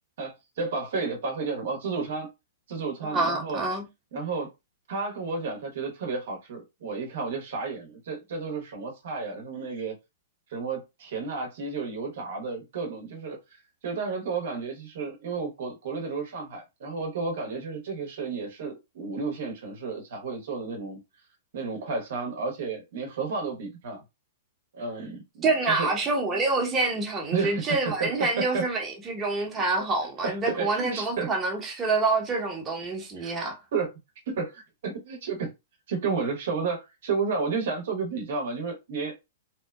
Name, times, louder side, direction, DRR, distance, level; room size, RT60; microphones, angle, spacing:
voice 1, 0.2-2.3 2.7-3.7 4.1-4.5 4.9-9.9 10.5-13.4 13.8-21.0 21.5-24.0 24.7-25.9 27.3-28.6 30.2-31.3 33.2-33.3 33.7-33.9 34.3-35.5 35.9-39.2, right 4 dB, 65° right, 0.8 m, -32 dB
voice 2, 3.0-3.8 25.4-33.6, right 3 dB, 20° right, 0.9 m, -27 dB
2.8 x 2.1 x 2.3 m
hypercardioid pair, 120°, 0 cm